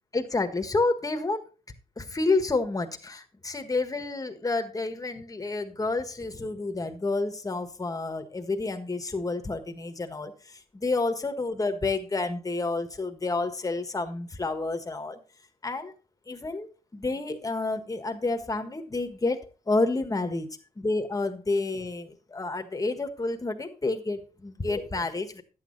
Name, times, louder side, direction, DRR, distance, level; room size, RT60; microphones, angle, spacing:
voice 1, 0.1-1.4 2.0-10.3 10.7-15.2 15.6-15.9 16.3-16.7 16.9-20.5 20.8-25.4, left 3 dB, 25° left, 7 dB, 1.5 m, -29 dB
11.5 x 8.6 x 4.0 m, 0.35 s
cardioid pair, 95°, 15 cm